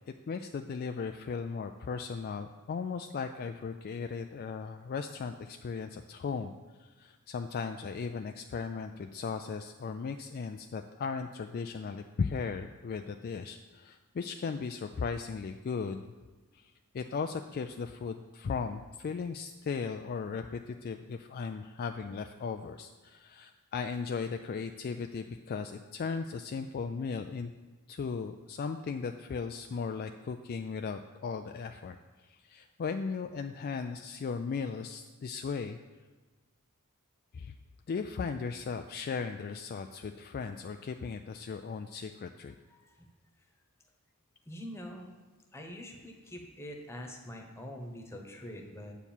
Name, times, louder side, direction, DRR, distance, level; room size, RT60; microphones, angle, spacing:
voice 1, 0.1-6.5 7.0-16.0 16.5-16.6 16.9-27.5 27.9-32.0 32.3-35.8 37.3-37.5 37.9-42.5, left 5 dB, 45° left, 6 dB, 0.3 m, -37 dB
voice 2, 42.7-43.1 43.4-43.5 44.5-45.1 45.5-48.9, equal, 10° left, 1 dB, 1.1 m, -44 dB
8.1 x 4.6 x 7.2 m, 1.3 s
head